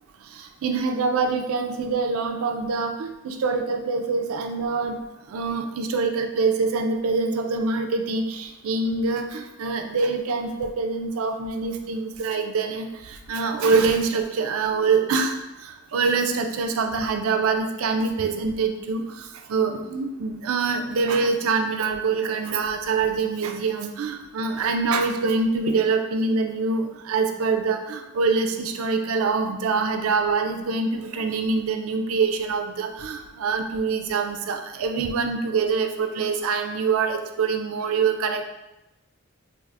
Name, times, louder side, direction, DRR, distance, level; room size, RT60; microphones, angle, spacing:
voice 1, 0.3-5.0 5.3-38.4, right 4 dB, 75° right, 5 dB, 0.4 m, -25 dB
4.6 x 2.4 x 2.3 m, 0.98 s
head